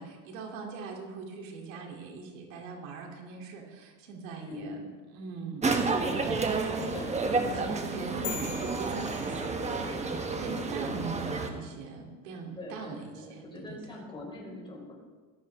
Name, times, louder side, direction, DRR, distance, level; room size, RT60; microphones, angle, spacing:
voice 1, 0.0-6.9 7.3-10.1 10.4-14.0, right 4 dB, 85° right, 0 dB, 3.6 m, -40 dB
voice 2, 4.4-4.8 6.9-7.6 12.5-14.9, left 2 dB, 15° left, -2 dB, 4.3 m, -42 dB
sound 1, 5.6-11.5, right 3 dB, 15° right, 1.4 m, -30 dB
sound 2, 8.2-10.0, left 8 dB, 60° left, 2.6 m, -41 dB
18.0 x 13.5 x 3.7 m, 1.4 s
supercardioid pair, 120°, 38 cm